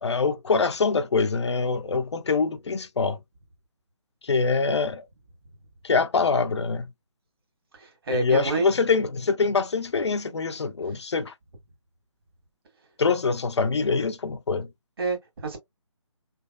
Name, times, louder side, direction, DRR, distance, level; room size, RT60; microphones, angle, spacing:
voice 1, 0.0-3.2 4.2-5.1 5.8-6.9 8.1-11.3 13.0-14.7, left 4 dB, 55° left, 0.5 m, -24 dB
voice 2, 7.8-8.7 15.0-15.6, right 3 dB, 45° right, 1.7 m, -28 dB
3.4 x 3.3 x 2.3 m
figure-of-eight pair, 150°, 17 cm